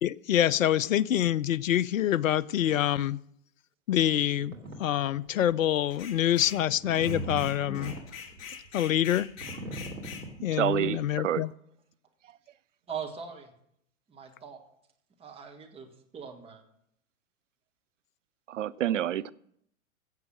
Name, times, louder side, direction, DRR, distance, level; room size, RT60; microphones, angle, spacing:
voice 1, 0.0-3.2 3.9-4.5 4.8-7.9 8.7-9.3 10.4-11.5, left 11 dB, 70° left, 0.5 m, -26 dB
sound 1, 4.4-4.8 5.2-5.5 6.0-10.9, right 2 dB, 85° right, 2.8 m, -39 dB
sound 2, 5.9-6.6 6.9-10.3, left 7 dB, 55° left, 2.9 m, -44 dB
voice 2, 10.5-11.4 18.5-19.3, right 11 dB, 60° right, 0.6 m, -28 dB
voice 3, 12.9-13.5 14.1-14.6 15.2-15.9 16.1-16.6, right 7 dB, 15° right, 1.7 m, -40 dB
15.5 x 7.4 x 6.2 m
figure-of-eight pair, 105°, 41 cm